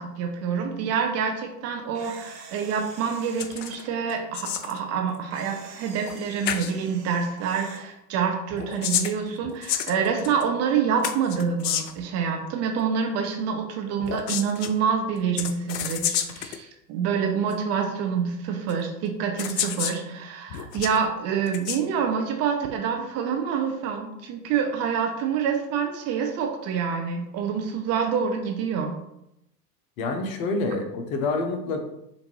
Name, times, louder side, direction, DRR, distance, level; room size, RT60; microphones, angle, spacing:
voice 1, 0.0-29.0, right 6 dB, 30° right, 3 dB, 0.6 m, -27 dB
Camera, 1.9-3.9 5.3-7.8, right 4 dB, 80° right, 1.1 m, -46 dB
sound 1, 3.4-3.8 4.1-4.8 6.1-6.2 6.4-6.7 8.5-10.4 11.0-12.0 14.0-14.7 15.4-16.6 17.5-17.6 18.7-18.8 19.4-20.0 20.5-21.0 21.5-21.8, left 10 dB, 75° left, 0.5 m, -30 dB
voice 2, 30.0-31.8, left 3 dB, 55° left, 5 dB, 0.9 m, -27 dB
5.0 x 2.6 x 3.0 m, 0.82 s
hypercardioid pair, 90°, 50 cm